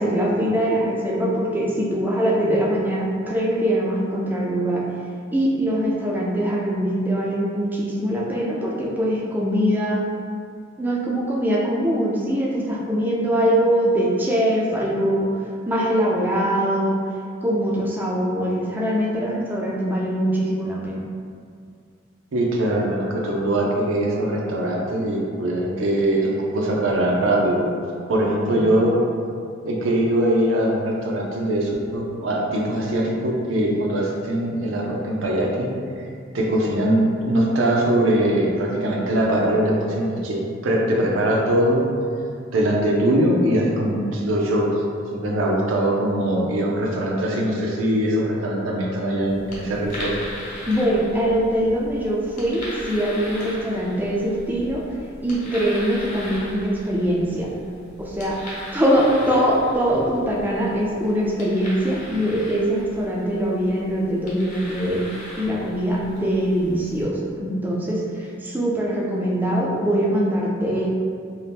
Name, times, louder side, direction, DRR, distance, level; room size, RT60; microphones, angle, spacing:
voice 1, 0.0-4.8 5.3-10.0 10.8-17.0 17.4-21.0 28.5-28.7 50.7-54.8 55.2-57.5 58.0-58.4 58.7-65.0 65.4-70.9, equal, 10° right, -4 dB, 0.3 m, -22 dB
voice 2, 22.3-27.7 28.1-29.0 29.6-35.7 36.0-36.1 36.3-41.9 42.5-44.7 45.1-50.2, right 1 dB, 85° right, -1 dB, 0.5 m, -21 dB
sound 1, 49.2-67.0, left 1 dB, 40° left, 0.8 m, -38 dB
2.7 x 2.1 x 3.3 m, 2.3 s
head